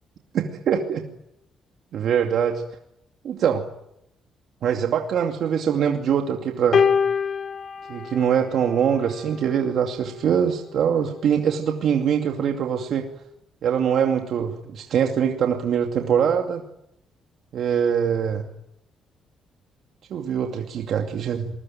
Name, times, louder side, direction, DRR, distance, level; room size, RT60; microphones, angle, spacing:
voice 1, 0.3-1.0 1.9-2.6 3.2-3.6 4.6-6.9 7.9-13.1 13.6-16.6 17.5-18.5 20.1-21.5, right 8 dB, 70° right, 3 dB, 2.5 m, -23 dB
sound 1, 6.7-9.2 10.2-10.4, left 6 dB, 50° left, 1.5 m, -24 dB
27.5 x 21.5 x 9.1 m, 0.81 s
cardioid pair, 90°, 0 cm